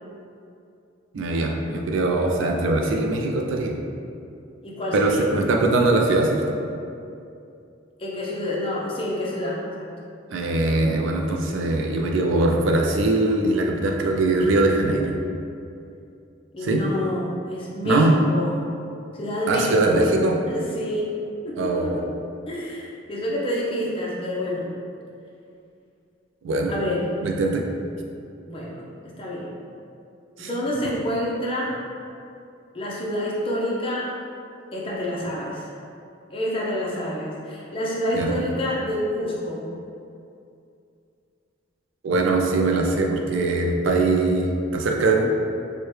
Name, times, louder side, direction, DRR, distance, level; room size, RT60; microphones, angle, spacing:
voice 1, 1.1-3.8 4.9-6.6 10.3-15.2 16.6-16.8 17.8-18.2 19.5-20.4 21.6-22.0 26.4-26.7 27.2-27.6 30.4-30.5 38.1-38.4 42.0-45.2, right 2 dB, 75° right, 1 dB, 0.4 m, -21 dB
voice 2, 4.6-5.2 8.0-9.9 16.5-18.0 18.3-18.5 19.1-20.0 20.5-21.1 21.4-22.0 22.5-24.7 26.7-27.1 28.5-28.9 29.2-29.5 30.4-31.8 32.7-34.1 34.7-35.7 36.3-39.7, left 1 dB, 25° left, -5 dB, 0.6 m, -28 dB
4.5 x 2.1 x 3.1 m, 2.5 s
head